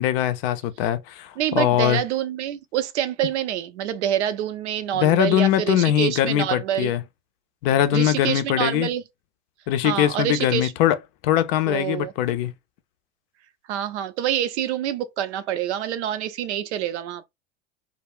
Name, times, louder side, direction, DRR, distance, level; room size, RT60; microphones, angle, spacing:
voice 1, 0.0-2.0 4.9-7.0 7.6-8.9 9.7-11.0 11.2-12.5, left 11 dB, 50° left, 0.5 m, -21 dB
voice 2, 1.4-6.9 7.9-9.0 9.8-10.7 11.7-12.1 13.7-17.3, right 10 dB, 65° right, 0.6 m, -26 dB
2.3 x 2.0 x 3.4 m
hypercardioid pair, 95°, 37 cm